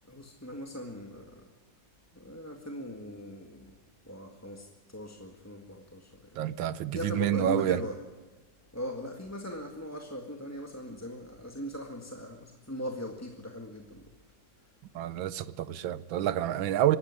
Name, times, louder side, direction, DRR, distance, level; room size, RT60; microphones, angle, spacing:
voice 1, 0.0-1.5 2.1-3.8 4.0-6.4 6.9-8.0 8.7-14.1, equal, 10° left, 2 dB, 1.6 m, -39 dB
voice 2, 6.4-7.8 14.9-17.0, right 11 dB, 85° right, 16 dB, 1.6 m, -28 dB
24.5 x 13.0 x 9.6 m, 1.3 s
omnidirectional pair, 2.1 m